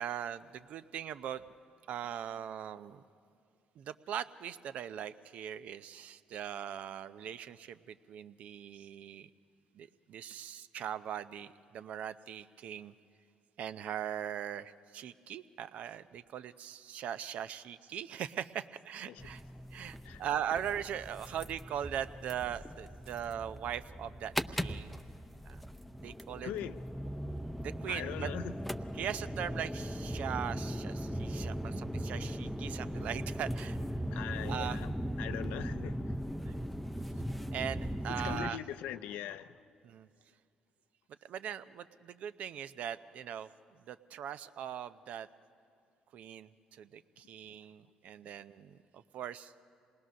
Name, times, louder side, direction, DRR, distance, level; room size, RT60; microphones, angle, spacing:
voice 1, 0.0-1.4 1.9-3.0 3.8-9.3 9.7-12.9 13.6-19.4 19.7-25.0 25.5-25.6 26.0-26.5 27.6-28.3 28.9-33.8 34.5-34.8 36.5-36.6 37.5-38.6 39.8-40.1 41.2-43.5 43.9-45.3 46.1-49.5, right 9 dB, 70° right, 0.6 m, -40 dB
sound 1, 19.2-38.5, equal, ahead, 0.6 m, -39 dB
voice 2, 26.4-26.8 27.9-28.5 34.1-34.9 35.2-36.1 38.2-39.5, left 11 dB, 85° left, 0.6 m, -41 dB
26.5 x 19.5 x 6.3 m
supercardioid pair, 70°, 2 cm